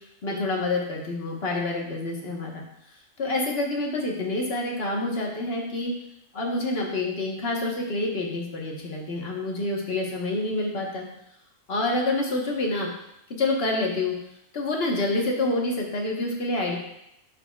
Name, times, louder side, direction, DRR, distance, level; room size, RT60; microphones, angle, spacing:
voice 1, 0.2-2.5 3.2-5.9 6.3-11.1 11.7-12.9 13.4-14.1 14.5-16.8, left 2 dB, 50° left, -1 dB, 1.4 m, -27 dB
10.5 x 4.8 x 2.3 m, 0.81 s
omnidirectional pair, 1.4 m